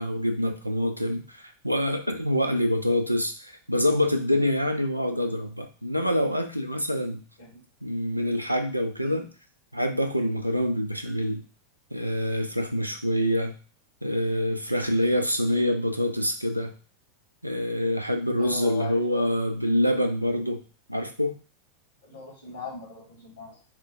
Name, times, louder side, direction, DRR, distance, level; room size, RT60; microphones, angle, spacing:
voice 1, 0.0-7.2 7.8-9.2 9.7-11.4 11.9-13.6 14.0-16.7 17.4-20.6 20.9-21.3, equal, 90° right, 6 dB, 0.4 m, -26 dB
voice 2, 18.4-19.3 22.0-23.6, left 4 dB, 65° left, -2 dB, 1.4 m, -39 dB
4.2 x 2.0 x 2.6 m, 0.36 s
figure-of-eight pair, 90°, 0 cm